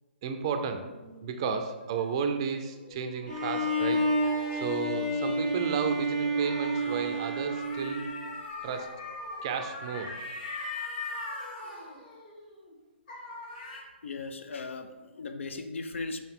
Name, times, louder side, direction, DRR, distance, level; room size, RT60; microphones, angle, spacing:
voice 1, 0.2-0.9 1.2-4.1 4.5-8.1 8.6-9.0 9.4-10.2, right 6 dB, 25° right, 7 dB, 0.4 m, -33 dB
sound 1, 0.6-5.4 6.2-12.8 13.1-13.8, left 2 dB, 40° left, 1.4 m, -42 dB
Bowed string instrument, 3.3-8.3, right 1 dB, 10° left, 1.0 m, -30 dB
voice 2, 14.0-16.2, left 3 dB, 85° left, 8 dB, 0.6 m, -37 dB
5.7 x 4.6 x 3.6 m, 1.2 s
hypercardioid pair, 170°, 7 cm